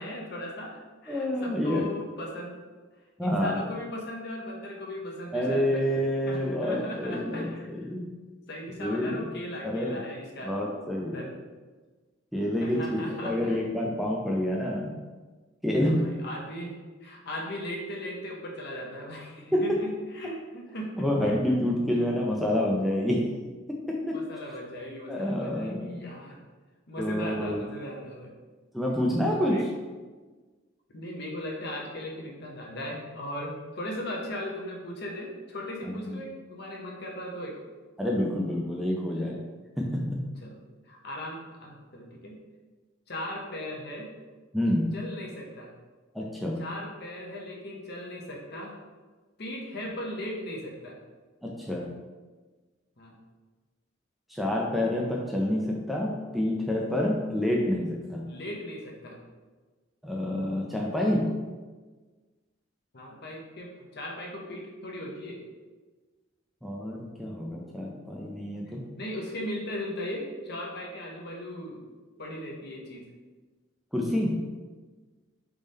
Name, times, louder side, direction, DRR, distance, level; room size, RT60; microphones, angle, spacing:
voice 1, 0.0-2.6 3.2-5.8 6.3-7.9 8.5-10.5 11.1-11.3 12.6-13.6 15.8-16.7 17.0-21.3 21.9-22.0 24.1-26.4 26.9-28.3 29.5-29.6 30.9-37.6 40.4-40.6 40.9-42.3 43.1-44.1 44.9-45.7 46.6-48.7 49.4-51.0 53.0-53.1 58.3-59.2 62.9-65.4 69.0-71.8 72.2-73.0, left 1 dB, 55° left, -1 dB, 0.9 m, -38 dB
voice 2, 1.1-1.8 3.2-3.6 5.3-8.1 8.8-9.2 9.6-10.0 10.4-11.2 12.3-15.0 15.6-16.1 19.5-19.8 21.0-23.3 23.7-24.2 25.1-26.0 27.0-27.6 28.7-29.7 35.8-36.2 38.0-39.4 39.8-40.2 44.5-45.0 46.1-46.7 51.4-51.9 54.3-58.3 60.0-61.4 66.6-68.9 73.9-74.5, left 1 dB, ahead, -2 dB, 0.4 m, -28 dB
3.5 x 3.5 x 4.1 m, 1.3 s
head